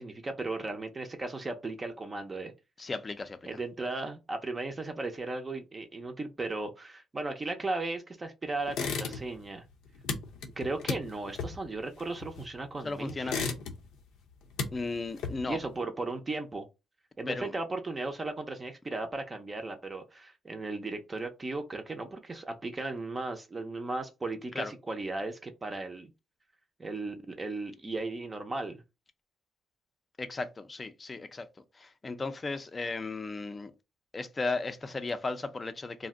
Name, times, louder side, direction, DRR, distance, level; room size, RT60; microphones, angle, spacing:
voice 1, 0.0-2.5 3.4-9.6 10.6-13.6 15.5-16.7 17.2-26.1 26.8-28.8, right 2 dB, 25° right, 0.5 m, -36 dB
voice 2, 2.8-3.5 12.8-13.4 14.7-15.6 17.3-17.5 24.5-24.7 30.2-31.5 31.7-33.7 34.1-36.1, left 3 dB, 30° left, 0.4 m, -35 dB
sound 1, 8.7-9.5 9.7-12.7 13.1-14.0 14.3-15.7, left 5 dB, 85° left, 0.6 m, -35 dB
2.5 x 2.1 x 3.6 m
cardioid pair, 90°, 0 cm